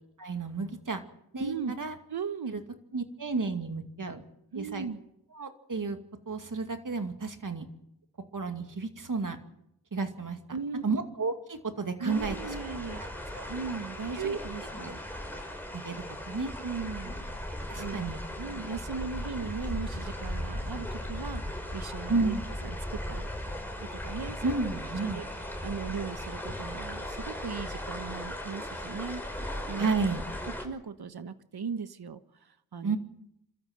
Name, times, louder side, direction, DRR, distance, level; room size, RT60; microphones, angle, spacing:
voice 1, 0.2-1.0 1.3-2.0 2.5-2.6 2.9-4.2 4.5-4.9 5.3-6.0 6.3-7.7 8.3-9.4 9.9-10.4 10.8-12.4 13.3-13.5 14.1-14.4 14.9-15.0 15.3-15.4 15.7-16.5 17.7-18.2 22.1-22.4 24.4-25.2 29.8-30.2 32.8-33.0, right 4 dB, 55° right, 6 dB, 2.4 m, -32 dB
voice 2, 1.4-1.7 2.1-2.6 4.5-5.0 10.5-10.8 12.0-13.0 13.5-15.0 16.6-17.2 17.8-18.0 18.4-22.3 22.6-23.3 23.8-24.6 25.0-25.2 25.6-29.9 30.4-33.0, right 5 dB, 75° right, 11 dB, 1.3 m, -38 dB
sound 1, 12.1-30.6, left 1 dB, 5° left, 5.5 m, -37 dB
28.0 x 13.5 x 7.9 m, 0.80 s
wide cardioid pair, 60°, 38 cm